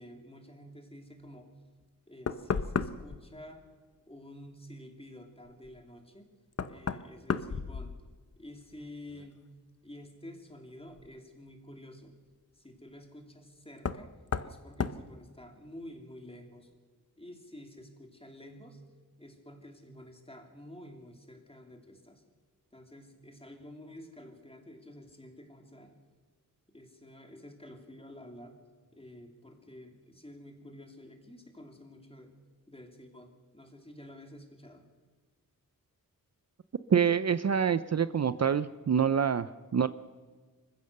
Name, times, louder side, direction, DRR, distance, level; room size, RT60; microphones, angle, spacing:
voice 1, 0.0-1.5 2.1-3.6 4.1-6.3 6.6-7.9 8.4-9.5 9.8-12.2 12.5-14.1 14.4-16.7 17.2-18.8 19.2-22.2 22.7-26.0 26.7-28.6 28.9-32.3 32.7-34.9, left 1 dB, 15° left, 4 dB, 2.9 m, -50 dB
Knock, 1.8-1.9 2.3-3.2 5.7-5.8 6.5-8.4 8.7-9.3 11.0-11.1 13.8-14.1 14.3-14.6 14.8-15.0, left 5 dB, 45° left, 0.8 m, -33 dB
voice 2, 36.9-39.9, right 7 dB, 50° right, 13 dB, 0.6 m, -26 dB
26.0 x 15.5 x 6.7 m, 1.4 s
wide cardioid pair, 120°, 35 cm